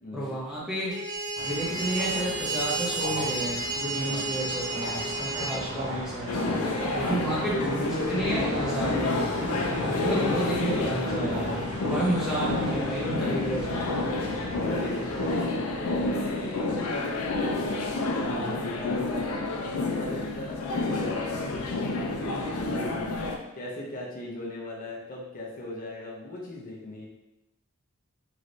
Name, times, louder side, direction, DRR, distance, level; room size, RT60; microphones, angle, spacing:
voice 1, 0.1-0.9 1.4-6.5 6.9-9.4 9.9-13.9, right 1 dB, ahead, -8 dB, 0.9 m, -31 dB
sound 1, 0.9-5.6, right 2 dB, 20° right, 0.3 m, -31 dB
sound 2, 1.4-15.5, equal, 60° right, 0.8 m, -37 dB
voice 2, 4.0-4.3 13.0-13.4 14.1-21.6 22.0-27.1, left 1 dB, 40° left, -3 dB, 0.7 m, -39 dB
sound 3, 6.3-23.4, left 2 dB, 75° left, 0.4 m, -29 dB
3.1 x 2.9 x 2.6 m, 0.92 s
head